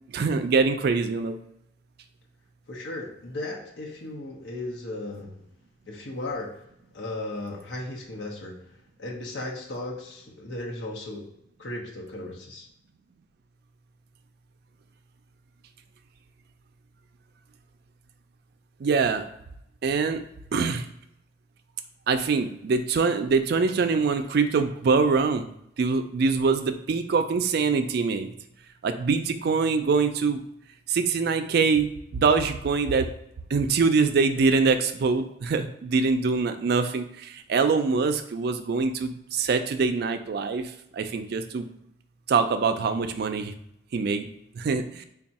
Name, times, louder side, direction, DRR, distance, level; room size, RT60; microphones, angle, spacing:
voice 1, 0.1-1.4 18.8-19.2 19.8-20.2 20.5-20.8 22.1-25.5 25.8-28.3 28.8-30.4 30.9-33.1 33.5-37.1 37.5-40.6 40.9-41.7 42.3-43.5 43.9-44.3 44.6-45.0, right 4 dB, 55° right, 8 dB, 0.4 m, -24 dB
voice 2, 2.7-5.4 5.9-6.6 6.9-8.6 9.0-11.3 11.6-12.7, left 2 dB, 80° left, -1 dB, 0.9 m, -36 dB
3.5 x 2.3 x 4.1 m, 0.80 s
head